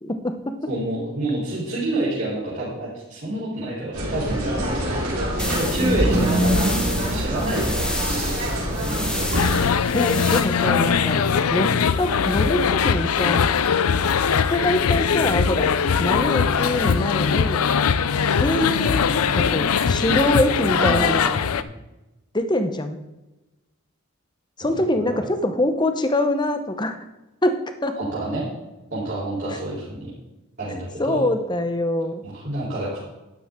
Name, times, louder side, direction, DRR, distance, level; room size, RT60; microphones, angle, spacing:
voice 1, 0.0-0.5 9.9-11.2 11.5-13.5 14.5-15.7 16.0-17.6 18.4-21.4 22.3-23.0 24.6-27.0 27.4-28.0 31.0-32.2, left 1 dB, 20° left, 8 dB, 0.9 m, -24 dB
voice 2, 0.7-4.6 5.6-7.9 8.4-9.0 20.8-21.7 24.6-25.2 27.9-28.5 28.9-30.1 30.6-31.3 32.2-33.0, right 2 dB, 50° right, -9 dB, 3.9 m, -28 dB
sound 1, 3.9-9.6, equal, 80° right, 4.0 m, -24 dB
sound 2, 5.4-10.4, left 1 dB, 5° left, 1.6 m, -31 dB
sound 3, 9.3-21.6, left 6 dB, 90° left, 0.5 m, -21 dB
12.0 x 10.0 x 3.7 m, 1.0 s
head